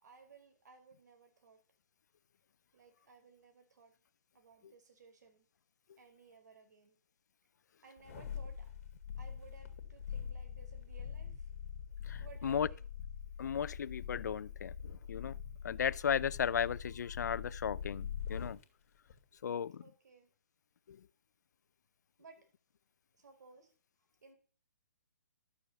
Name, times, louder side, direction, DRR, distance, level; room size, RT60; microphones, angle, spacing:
voice 1, 0.0-1.6 2.7-3.9 4.3-5.5 6.0-7.0 7.8-8.7 9.2-11.5 12.2-12.9 19.8-20.3 22.2-22.4 23.1-23.7 24.2-24.4, right 5 dB, 65° right, 4.8 m, -59 dB
sound 1, 8.0-18.6 19.1-19.2, left 8 dB, 50° left, 1.9 m, -44 dB
voice 2, 12.1-12.7 13.4-15.4 15.6-18.6 19.4-19.8 20.9-21.0, left 8 dB, 65° left, 0.4 m, -35 dB
12.0 x 6.9 x 6.7 m
hypercardioid pair, 165°, 10 cm